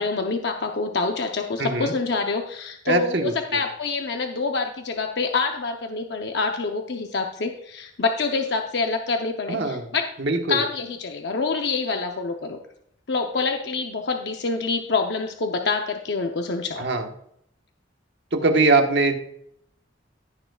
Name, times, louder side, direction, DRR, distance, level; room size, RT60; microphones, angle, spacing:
voice 1, 0.0-10.1 10.5-12.6 13.1-16.8, left 4 dB, 60° left, 4 dB, 0.7 m, -26 dB
voice 2, 1.6-1.9 2.9-3.6 9.5-9.8 10.2-10.6 16.8-17.1 18.3-19.1, right 3 dB, 65° right, 4 dB, 1.2 m, -22 dB
15.5 x 6.7 x 2.3 m, 0.73 s
head